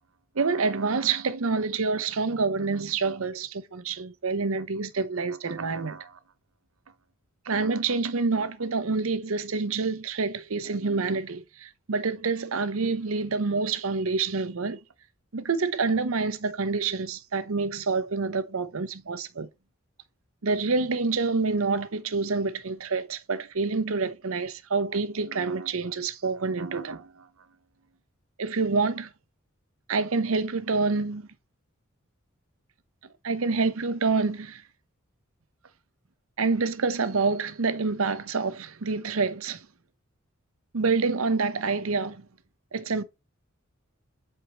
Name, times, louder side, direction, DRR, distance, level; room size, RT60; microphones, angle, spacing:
voice 1, 0.3-6.2 7.5-14.8 15.3-19.5 20.4-27.3 28.4-29.1 29.9-31.3 33.2-34.6 36.4-39.7 40.7-42.3 42.7-43.0, right 4 dB, 80° right, 0.8 m, -27 dB
8.0 x 4.6 x 3.0 m
head